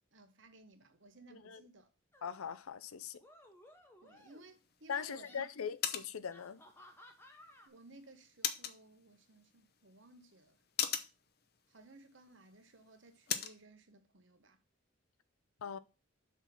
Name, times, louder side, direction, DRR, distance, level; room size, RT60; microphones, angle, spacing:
voice 1, 0.1-1.9 4.0-5.5 7.7-10.6 11.7-14.6, right 2 dB, 60° right, 1.1 m, -59 dB
voice 2, 1.3-1.6 2.2-3.2 4.9-6.6 15.6-15.8, left 7 dB, 90° left, 0.5 m, -41 dB
sound 1, 2.1-2.4 3.1-4.6 5.0-5.5 6.3-7.7, left 1 dB, 10° left, 0.9 m, -59 dB
sound 2, 4.2-13.6, left 9 dB, 50° left, 0.7 m, -43 dB
6.1 x 4.2 x 5.8 m
head